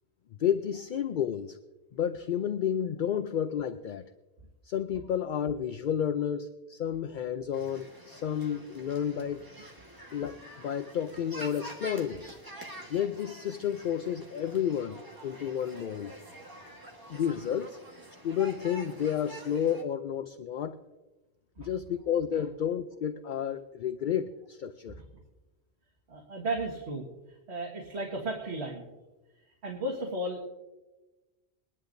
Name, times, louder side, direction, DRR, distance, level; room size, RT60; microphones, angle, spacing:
voice 1, 0.4-1.6 1.9-4.1 4.6-9.5 10.1-12.2 12.9-16.2 17.1-17.8 18.2-20.8 21.6-25.0, left 9 dB, 55° left, 9 dB, 0.6 m, -31 dB
sound 1, 7.5-19.8, equal, 20° right, 1.4 m, -47 dB
voice 2, 26.1-28.9 29.6-30.5, right 1 dB, 75° right, -1 dB, 1.9 m, -35 dB
23.0 x 10.5 x 2.6 m, 1.1 s
omnidirectional pair, 1.1 m